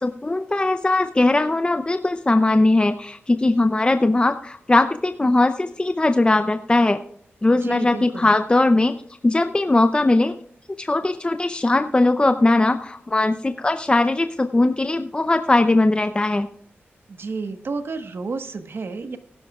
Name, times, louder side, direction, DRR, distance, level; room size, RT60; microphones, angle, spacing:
voice 1, 0.0-7.0 7.4-8.9 9.2-10.3 10.8-16.5, left 2 dB, 25° left, 8 dB, 0.6 m, -19 dB
voice 2, 7.5-8.3 17.1-19.2, right 4 dB, 65° right, 8 dB, 1.3 m, -31 dB
18.5 x 10.5 x 2.4 m, 0.65 s
wide cardioid pair, 85°, 4 cm